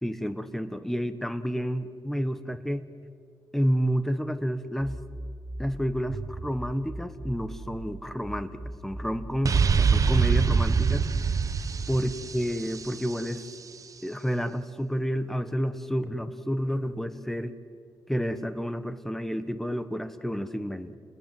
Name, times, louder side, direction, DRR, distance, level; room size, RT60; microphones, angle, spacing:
voice 1, 0.0-2.8 3.5-4.9 5.6-8.5 8.8-11.1 11.9-13.5 14.0-17.5 18.1-21.0, equal, 5° left, 11 dB, 1.3 m, -30 dB
sound 1, 4.8-7.8 8.2-11.3, right 1 dB, 25° right, 3.1 m, -39 dB
sound 2, 9.4-13.2, right 5 dB, 50° right, 1.1 m, -24 dB
29.5 x 20.0 x 7.9 m, 2.2 s
cardioid pair, 105°, 8 cm